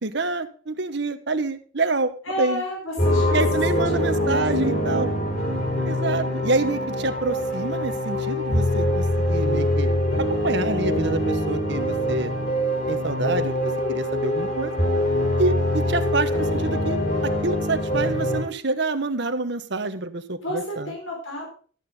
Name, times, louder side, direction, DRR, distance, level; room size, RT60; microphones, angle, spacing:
voice 1, 0.0-2.6 3.3-5.1 5.8-9.9 10.2-12.3 12.9-14.7 15.4-20.9, right 3 dB, 60° right, 10 dB, 1.1 m, -27 dB
voice 2, 2.3-3.4 3.7-3.8 4.2-4.5 20.4-21.5, equal, 85° left, -1 dB, 5.5 m, -31 dB
sound 1, 3.0-18.4, left 1 dB, 50° left, 4.8 m, -24 dB
13.5 x 9.4 x 4.0 m, 0.42 s
head